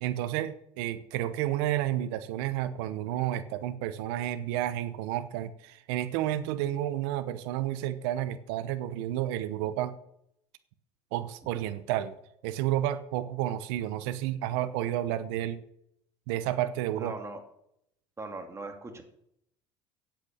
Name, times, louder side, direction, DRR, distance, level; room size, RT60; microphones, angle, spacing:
voice 1, 0.0-10.0 11.1-12.2 12.4-15.6 16.3-17.1, right 12 dB, 80° right, 12 dB, 0.8 m, -31 dB
voice 2, 17.0-17.4 18.2-19.0, right 3 dB, 20° right, 5 dB, 2.5 m, -39 dB
8.2 x 8.2 x 8.7 m, 0.75 s
supercardioid pair, 85°, 13 cm